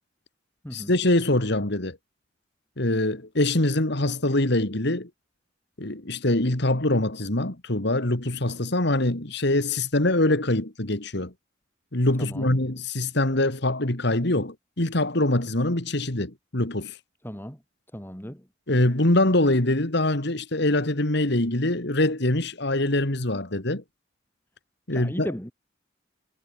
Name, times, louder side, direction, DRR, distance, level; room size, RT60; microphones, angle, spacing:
voice 1, 0.7-2.0 2.8-5.1 5.8-11.3 11.9-17.0 18.7-23.8 24.9-25.3, left 1 dB, 60° left, 2.6 m, -24 dB
voice 2, 12.2-12.6 17.2-17.6 17.9-18.4 24.9-25.5, equal, 10° left, 4.1 m, -35 dB
head